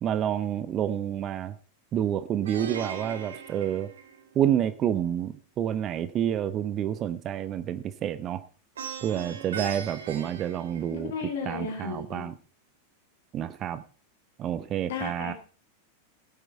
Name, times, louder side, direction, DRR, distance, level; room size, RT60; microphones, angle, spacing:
voice 1, 0.0-1.5 1.9-3.9 4.4-8.4 9.0-11.1 11.5-12.3 13.3-13.8 14.4-15.3, right 10 dB, 30° right, 13 dB, 0.8 m, -28 dB
Plucked string instrument, 2.5-4.6 8.8-11.4, right 6 dB, 65° right, 1.6 m, -39 dB
voice 2, 10.9-12.3 14.8-15.3, left 5 dB, 55° left, 5 dB, 3.4 m, -34 dB
16.5 x 8.2 x 4.5 m, 0.37 s
figure-of-eight pair, 90°, 0 cm